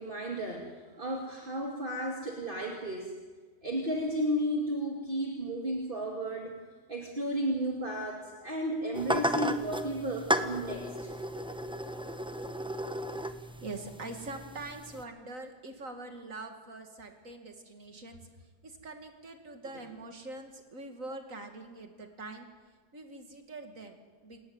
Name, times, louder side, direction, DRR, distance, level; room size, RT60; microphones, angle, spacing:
voice 1, 0.0-3.1 3.6-6.5 6.9-11.1, equal, 35° right, 0 dB, 2.5 m, -33 dB
sound 1, 8.9-15.0, equal, 5° right, 0.7 m, -34 dB
voice 2, 13.4-18.2 18.6-22.5 22.9-24.5, right 2 dB, 65° right, 5 dB, 2.6 m, -44 dB
27.5 x 13.5 x 9.5 m, 1.4 s
omnidirectional pair, 1.5 m